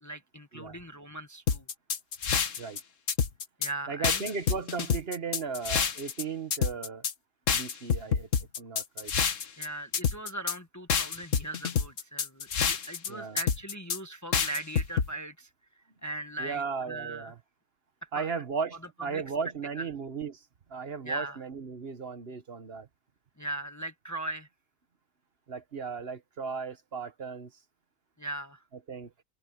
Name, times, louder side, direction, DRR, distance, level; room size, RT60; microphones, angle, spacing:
voice 1, 0.0-1.7 3.6-4.3 9.6-17.3 18.0-18.3 19.1-19.2 19.7-19.9 21.0-21.4 23.4-24.5 28.2-28.6, right 2 dB, 15° left, 1.2 m, -39 dB
sound 1, 1.5-2.8 3.1-3.7 4.0-6.2 6.5-7.1 7.5-9.7 9.9-10.5 10.9-13.1 13.4-14.0 14.3-15.1, left 7 dB, 65° left, 1.6 m, -27 dB
voice 2, 3.9-7.1 7.5-8.3 8.6-9.1 13.1-13.4 16.4-17.4 18.1-22.9 25.5-27.5 28.9-29.1, right 5 dB, 45° right, 1.3 m, -36 dB
omnidirectional pair, 1.4 m